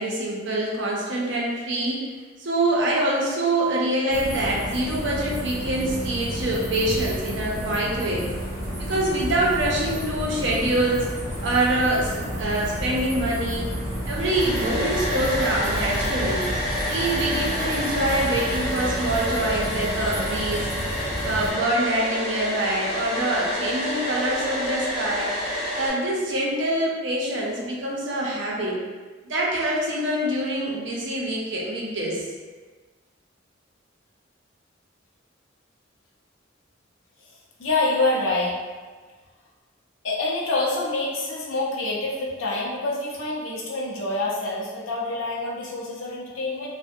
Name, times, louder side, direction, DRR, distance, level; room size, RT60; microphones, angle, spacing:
voice 1, 0.0-2.1 2.4-8.3 8.8-11.1 11.4-13.7 14.1-16.4 16.9-20.7 21.2-25.3 25.7-28.8 29.3-32.2, right 1 dB, 65° right, -3 dB, 0.5 m, -25 dB
sound 1, 4.1-21.5, equal, 15° left, 1.0 m, -31 dB
Domestic sounds home sounds, 14.1-25.9, left 1 dB, ahead, 1.3 m, -29 dB
voice 2, 37.6-38.6 40.0-46.7, left 2 dB, 90° left, -3 dB, 0.5 m, -26 dB
2.4 x 2.1 x 2.5 m, 1.4 s
head